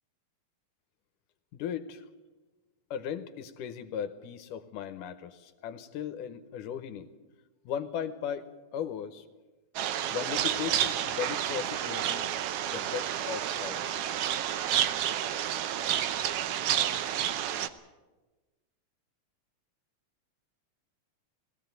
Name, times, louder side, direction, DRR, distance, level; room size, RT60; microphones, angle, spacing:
voice 1, 1.5-2.1 2.9-7.1 7.7-9.2 10.1-12.3 12.7-14.1 14.9-15.0, left 8 dB, 80° left, 9 dB, 2.4 m, -37 dB
sound 1, 9.8-17.7, right 10 dB, 85° right, 1.3 m, -30 dB
19.5 x 16.0 x 9.2 m, 1.2 s
omnidirectional pair, 3.7 m